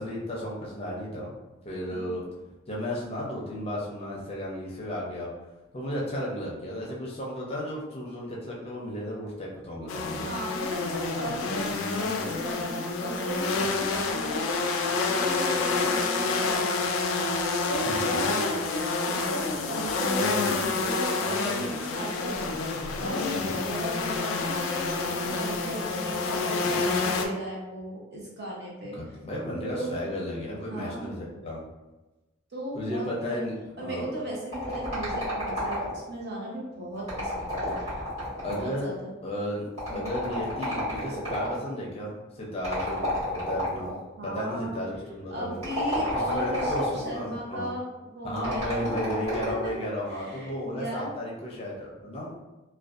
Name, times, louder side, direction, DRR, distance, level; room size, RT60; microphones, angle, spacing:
voice 1, 0.0-1.3 1.6-2.3 2.7-5.3 5.7-10.3 17.9-18.2 23.4-23.6 28.9-31.6 32.7-34.1 38.4-38.9 39.2-44.0 44.2-45.6 46.1-47.7 48.2-52.3, equal, 30° left, -4 dB, 0.5 m, -34 dB
sound 1, 9.9-27.3, left 4 dB, 85° left, 0.3 m, -28 dB
voice 2, 10.2-22.5 23.0-29.0 29.7-29.9 30.7-31.2 32.5-33.4 33.8-37.9 38.4-39.1 39.9-40.1 44.2-44.8 45.3-49.2 49.6-49.7 50.1-51.1, right 1 dB, 55° right, -5 dB, 0.8 m, -36 dB
sound 2, 34.5-36.1 37.0-38.8 39.8-41.6 42.6-44.0 45.5-47.1 48.4-49.7, equal, 35° right, 1.2 m, -31 dB
2.5 x 2.2 x 2.4 m, 1.1 s
head